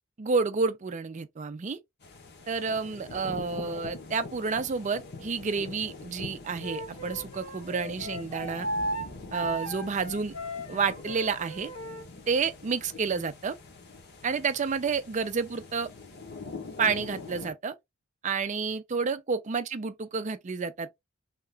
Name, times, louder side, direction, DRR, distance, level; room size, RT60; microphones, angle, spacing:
voice 1, 0.2-1.8 2.5-8.7 9.3-10.3 10.7-11.7 12.3-13.6 14.2-15.9 16.8-17.7 18.2-21.0, right 5 dB, 35° right, 0.4 m, -30 dB
sound 1, 2.0-17.5, left 3 dB, 45° left, 0.8 m, -44 dB
Wind instrument woodwind instrument, 6.6-12.1, right 1 dB, 65° left, 1.2 m, -36 dB
2.8 x 2.4 x 3.3 m
head